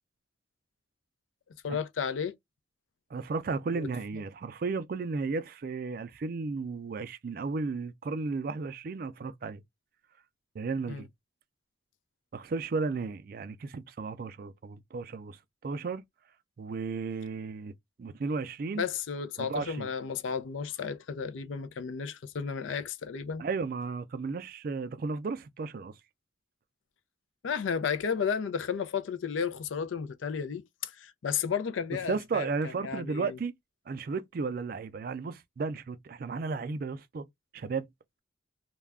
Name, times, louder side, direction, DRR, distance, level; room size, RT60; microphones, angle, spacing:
voice 1, 1.6-2.4 3.7-3.9 10.9-11.1 18.7-23.5 27.4-33.4, left 6 dB, 85° left, 0.4 m, -33 dB
voice 2, 3.1-9.6 10.6-11.1 12.3-15.4 15.6-16.0 16.6-17.7 18.0-18.9 19.4-19.9 23.4-25.9 32.1-33.5 33.9-37.3 37.5-37.9, right 4 dB, 50° right, 0.3 m, -34 dB
2.3 x 2.1 x 3.3 m
head